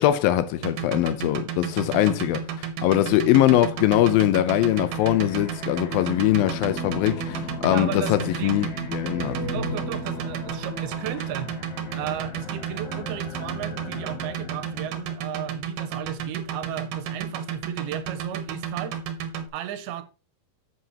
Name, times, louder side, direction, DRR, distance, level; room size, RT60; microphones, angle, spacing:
voice 1, 0.0-9.4, left 13 dB, 80° left, 2.4 m, -22 dB
sound 1, 0.6-19.4, right 8 dB, 65° right, 2.4 m, -32 dB
sound 2, 4.6-15.1, left 3 dB, 55° left, 2.8 m, -36 dB
voice 2, 7.7-8.5 9.2-11.5 11.9-19.0 19.5-20.0, right 11 dB, 90° right, 2.8 m, -35 dB
10.5 x 7.8 x 2.9 m
omnidirectional pair, 4.4 m